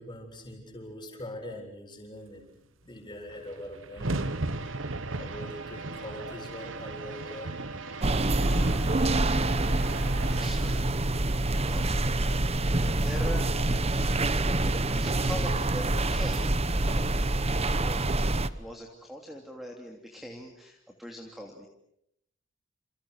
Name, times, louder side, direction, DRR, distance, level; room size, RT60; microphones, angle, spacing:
voice 1, 0.0-2.5 2.8-4.3 5.1-7.6, left 1 dB, 25° left, 3 dB, 7.6 m, -42 dB
sound 1, 2.8-2.9 3.1-17.4, right 2 dB, 90° right, 1.4 m, -40 dB
sound 2, 4.0-10.4, right 4 dB, 75° right, 2.9 m, -42 dB
sound 3, 8.0-18.5, right 2 dB, 30° right, 1.1 m, -26 dB
voice 2, 9.5-18.2 18.6-21.7, equal, ahead, 1 dB, 3.0 m, -43 dB
29.5 x 29.0 x 6.6 m, 0.75 s
head